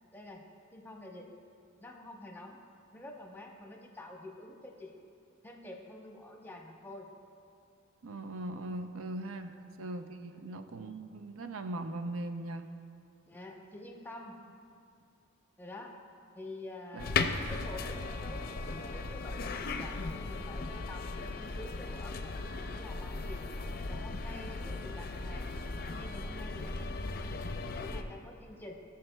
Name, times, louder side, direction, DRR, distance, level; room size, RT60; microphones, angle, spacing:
voice 1, 0.1-0.4 0.7-1.3 1.8-2.6 2.9-5.0 5.4-7.1 9.4-9.6 10.3-10.5 13.3-14.4 15.6-16.0 16.4-23.5 23.9-25.5 25.9-28.7, left 1 dB, 10° left, 0 dB, 0.8 m, -48 dB
voice 2, 8.0-12.7 16.9-17.1, right 2 dB, 80° right, 7 dB, 0.5 m, -40 dB
sound 1, 17.0-28.0, left 3 dB, 45° left, 0.5 m, -37 dB
19.5 x 6.7 x 2.2 m, 2.5 s
head